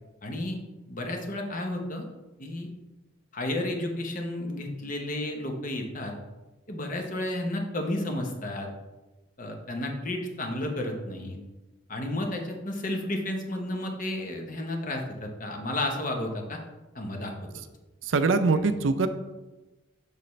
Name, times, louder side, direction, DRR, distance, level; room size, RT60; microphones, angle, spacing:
voice 1, 0.2-0.6 0.9-2.0 2.4-2.7 3.3-6.1 6.7-8.7 9.4-11.4 11.9-16.6 16.9-17.5, left 1 dB, 40° left, 3 dB, 0.9 m, -32 dB
voice 2, 18.0-19.1, right 4 dB, 70° right, 10 dB, 0.5 m, -23 dB
6.8 x 6.6 x 3.2 m, 1.1 s
head